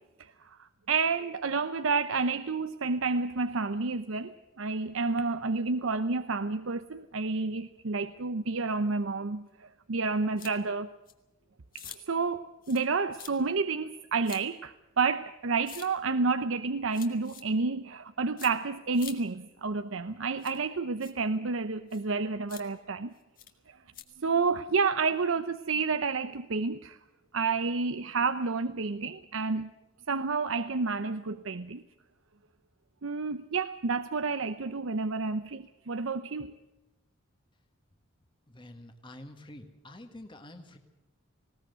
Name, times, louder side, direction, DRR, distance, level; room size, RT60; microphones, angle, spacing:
voice 1, 0.9-10.9 11.7-23.1 24.2-27.0 27.3-29.7 30.1-31.8 33.0-36.5, right 4 dB, 80° right, 11 dB, 0.7 m, -30 dB
sound 1, 10.4-10.5 11.1-11.2 11.7-12.0 12.6-12.9 13.1-13.3 14.2-14.4 15.7-15.9 16.9-17.4 18.4-18.5 18.9-19.2 20.4-20.6 21.0-21.1 21.9-22.0 22.5-22.6 23.4-23.5 23.9-24.0, left 9 dB, 45° left, 2.0 m, -45 dB
voice 2, 38.5-40.8, left 1 dB, 25° left, 5 dB, 1.7 m, -48 dB
20.0 x 18.5 x 8.0 m, 1.0 s
head